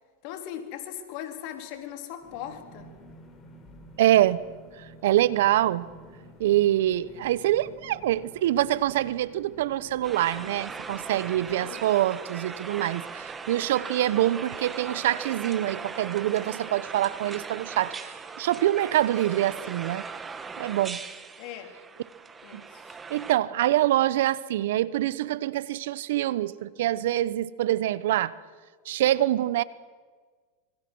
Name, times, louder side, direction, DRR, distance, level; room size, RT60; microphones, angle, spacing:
voice 1, 0.2-2.9 7.1-7.2 11.6-11.9 14.1-14.2 21.4-21.8 22.4-23.0, left 10 dB, 60° left, 5 dB, 3.7 m, -39 dB
sound 1, 2.2-11.6, equal, 25° left, 6.0 m, -51 dB
voice 2, 4.0-4.4 5.0-5.9 6.4-20.0 20.6-21.0 22.5-22.6 23.1-28.3 28.9-29.6, right 13 dB, 70° right, 18 dB, 1.0 m, -25 dB
sound 2, 10.0-23.4, right 5 dB, 20° right, 2.0 m, -39 dB
26.0 x 24.5 x 6.3 m, 1.5 s
hypercardioid pair, 100°, 0 cm